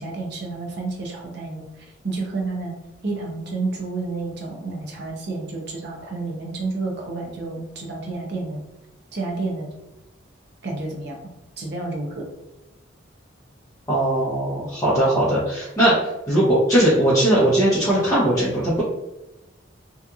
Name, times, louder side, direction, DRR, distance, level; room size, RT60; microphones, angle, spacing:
voice 1, 0.0-2.7 3.0-8.6 9.1-9.7 10.6-11.2 11.6-12.3, right 3 dB, 55° right, -1 dB, 0.6 m, -30 dB
voice 2, 13.9-15.9 16.3-18.8, right 1 dB, 15° left, -11 dB, 0.7 m, -19 dB
2.8 x 2.5 x 2.3 m, 0.95 s
head